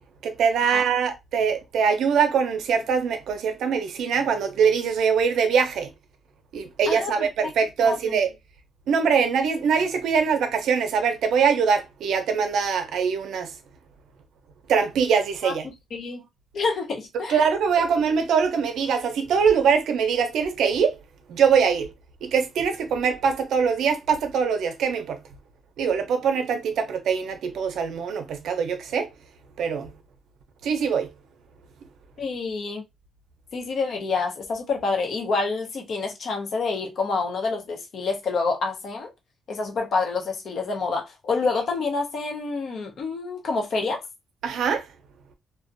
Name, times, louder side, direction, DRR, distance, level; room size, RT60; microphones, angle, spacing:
voice 1, 0.2-5.9 6.5-8.3 8.9-13.5 14.7-15.7 17.3-21.0 21.3-21.9 22.2-25.2 25.8-29.1 29.6-29.9 30.6-31.1 44.4-44.8, right 6 dB, 75° right, 0.5 m, -23 dB
voice 2, 6.9-7.3 7.8-8.2 15.4-15.5 15.9-16.2 16.5-17.4 32.2-32.8 33.5-39.1 39.5-44.0, left 4 dB, 55° left, 0.7 m, -27 dB
2.5 x 2.1 x 2.5 m
cardioid pair, 130°, 0 cm